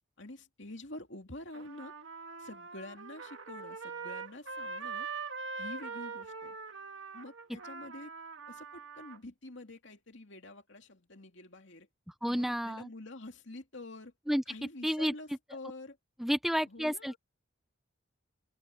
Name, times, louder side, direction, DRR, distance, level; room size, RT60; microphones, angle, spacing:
voice 1, 0.2-1.9 2.4-5.1 5.6-6.6 7.1-8.1 8.5-11.9 12.3-14.1 14.5-16.0 16.6-17.2, left 2 dB, 60° left, 2.7 m, -47 dB
Trumpet, 1.5-9.2, right 4 dB, 60° right, 2.1 m, -43 dB
voice 2, 12.2-12.9 14.3-14.4 14.8-15.1 16.2-17.2, equal, ahead, 0.6 m, -30 dB
open air
head